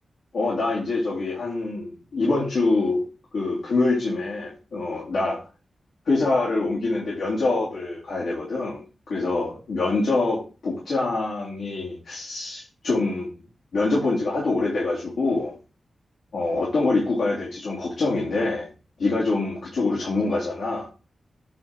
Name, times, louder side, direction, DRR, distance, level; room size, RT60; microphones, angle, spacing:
voice 1, 0.3-3.0 3.3-5.4 6.0-8.8 9.1-13.4 13.7-15.5 16.3-18.7 19.0-20.9, left 3 dB, 90° left, -6 dB, 3.1 m, -25 dB
9.2 x 4.0 x 4.6 m, 0.34 s
wide cardioid pair, 170°, 0 cm